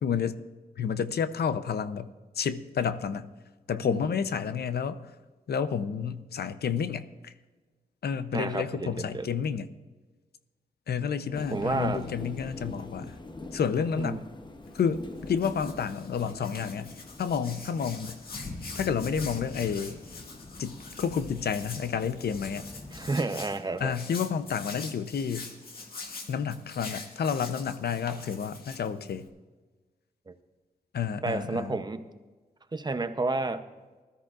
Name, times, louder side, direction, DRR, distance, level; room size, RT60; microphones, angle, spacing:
voice 1, 0.0-0.4 0.8-2.1 2.4-3.3 3.7-5.0 5.5-7.3 8.0-9.7 10.9-13.1 13.5-14.2 14.7-16.9 17.2-18.2 18.7-20.0 20.6-22.7 23.8-25.5 26.3-29.3 30.9-31.8, left 7 dB, 85° left, 12 dB, 0.7 m, -30 dB
voice 2, 8.3-9.3 11.5-12.0 14.0-14.2 22.9-23.9 30.3-30.4 31.2-32.0 32.7-33.6, right 3 dB, 25° right, 9 dB, 0.7 m, -31 dB
sound 1, 11.3-23.1, left 2 dB, 30° left, 0.9 m, -44 dB
Hands, 14.6-29.3, left 3 dB, 70° left, 1.9 m, -45 dB
20.0 x 13.5 x 2.5 m, 1.3 s
wide cardioid pair, 135°, 16 cm